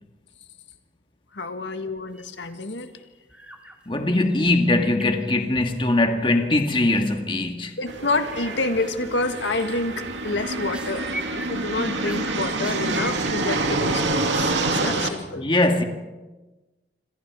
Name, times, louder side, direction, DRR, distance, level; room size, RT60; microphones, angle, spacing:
voice 1, 1.3-2.9 7.8-11.1 11.5-15.5, left 2 dB, 80° left, 1.8 m, -28 dB
sound 1, 2.1-2.5 2.8-3.0 3.3-3.8 4.0-5.8 6.9-7.1 7.6-8.0 8.3-8.5 8.8-9.1 9.5-13.3, right 1 dB, 5° right, 2.5 m, -41 dB
voice 2, 3.9-7.8 15.4-15.8, left 2 dB, 25° left, 1.7 m, -21 dB
sound 2, 7.9-15.1, right 2 dB, 85° right, 2.6 m, -27 dB
28.0 x 25.5 x 4.8 m
head